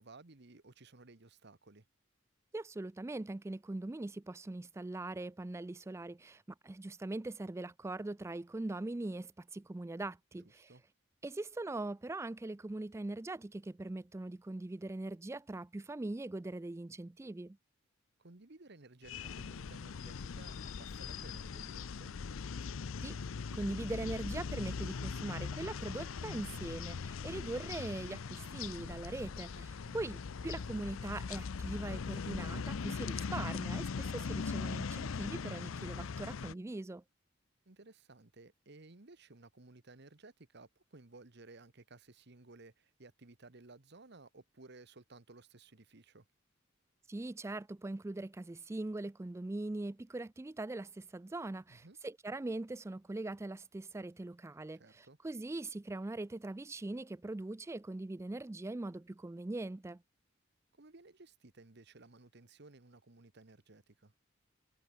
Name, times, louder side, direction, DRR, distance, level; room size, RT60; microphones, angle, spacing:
voice 1, 0.0-1.8 10.4-10.8 18.2-22.2 29.5-30.0 37.6-46.3 51.7-52.0 54.7-55.2 60.8-64.1, right 3 dB, 60° right, 1.4 m, -57 dB
voice 2, 2.5-10.7 11.2-17.6 23.0-23.2 23.5-37.0 47.1-60.0, right 2 dB, 15° right, 0.3 m, -41 dB
sound 1, 19.0-36.5, left 5 dB, 85° left, 0.6 m, -40 dB
head